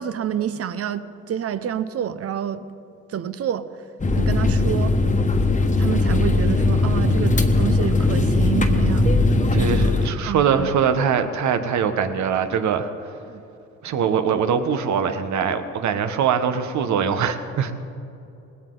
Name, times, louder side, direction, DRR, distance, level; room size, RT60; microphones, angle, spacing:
voice 1, 0.0-2.7 3.1-3.7 4.2-5.0 5.8-9.1 9.5-9.7 10.3-10.7 13.3-13.4, right 9 dB, 50° right, 13 dB, 0.8 m, -28 dB
sound 1, 4.0-10.1, left 2 dB, 25° left, 1.4 m, -19 dB
voice 2, 9.5-13.1 13.8-17.7, right 7 dB, 70° right, 9 dB, 1.2 m, -22 dB
20.0 x 17.0 x 3.9 m, 2.7 s
cardioid pair, 90°, 30 cm